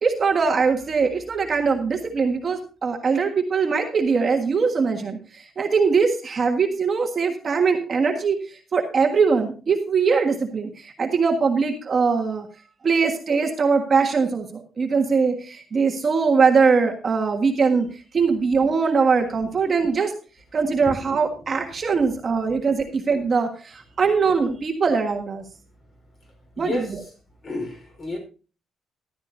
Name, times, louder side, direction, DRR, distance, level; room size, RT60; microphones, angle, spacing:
voice 1, 0.0-12.5 12.8-17.9 18.1-20.1 20.5-25.4 26.6-27.0, right 5 dB, 35° right, 3 dB, 1.5 m, -21 dB
voice 2, 26.6-27.1 27.4-28.2, left 2 dB, 35° left, 4 dB, 5.0 m, -31 dB
14.5 x 12.0 x 2.7 m, 0.35 s
cardioid pair, 155°, 0 cm